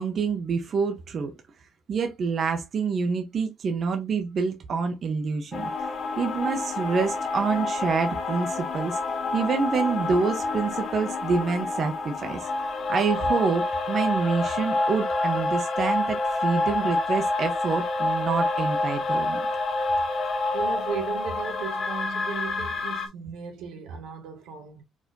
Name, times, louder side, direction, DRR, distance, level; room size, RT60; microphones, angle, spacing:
voice 1, 0.0-1.3 1.9-5.7 6.2-9.0 9.3-19.4 20.4-20.5, right 5 dB, 45° right, 0.8 m, -27 dB
sound 1, 5.5-23.1, left 2 dB, 45° left, 1.0 m, -28 dB
voice 2, 20.5-24.8, right 6 dB, 85° right, 1.8 m, -35 dB
4.8 x 4.2 x 2.6 m
cardioid pair, 115°, 0 cm